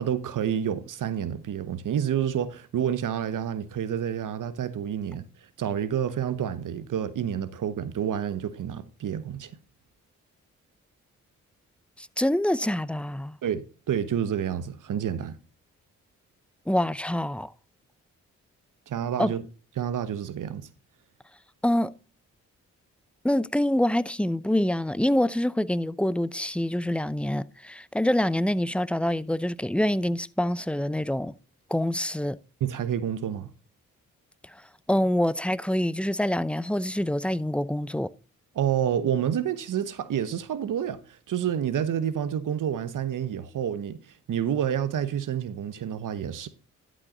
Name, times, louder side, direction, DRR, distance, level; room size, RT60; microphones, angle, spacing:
voice 1, 0.0-5.2 5.6-9.5 13.4-15.3 18.9-19.4 19.8-20.7 32.6-33.5 38.5-41.0 41.3-44.0 44.3-46.5, right 9 dB, 70° right, 1.0 m, -29 dB
voice 2, 12.0-13.4 16.7-17.5 19.2-19.3 21.6-21.9 23.2-31.3 31.7-32.4 34.9-38.1, left 1 dB, 5° left, 0.6 m, -26 dB
12.0 x 5.5 x 3.9 m
supercardioid pair, 45°, 32 cm